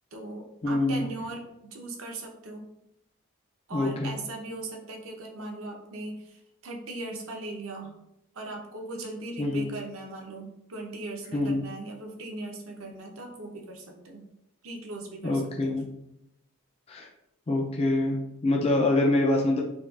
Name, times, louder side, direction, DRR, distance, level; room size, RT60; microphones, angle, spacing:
voice 1, 0.1-2.6 3.7-7.9 8.3-14.2 14.6-15.8, right 2 dB, 70° right, 1 dB, 0.7 m, -39 dB
voice 2, 0.6-1.0 3.7-4.1 9.4-9.6 11.3-11.6 15.2-15.9 16.9-17.1 17.5-19.6, left 2 dB, 25° left, -1 dB, 0.3 m, -25 dB
5.2 x 2.3 x 2.4 m, 0.85 s
head